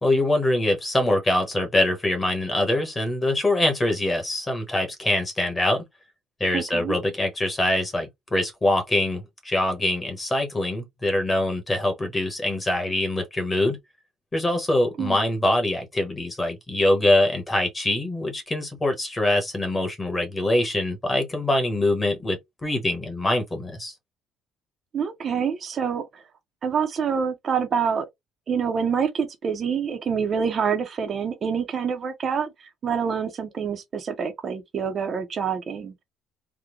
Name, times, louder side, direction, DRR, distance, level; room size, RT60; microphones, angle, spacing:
voice 1, 0.0-5.8 6.4-13.8 14.3-23.9, left 1 dB, 15° left, 1.1 m, -24 dB
voice 2, 6.5-7.0 15.0-15.2 24.9-26.2 26.6-28.1 28.5-36.0, right 6 dB, 35° right, 0.6 m, -26 dB
3.6 x 2.1 x 3.1 m
cardioid pair, 155°, 0 cm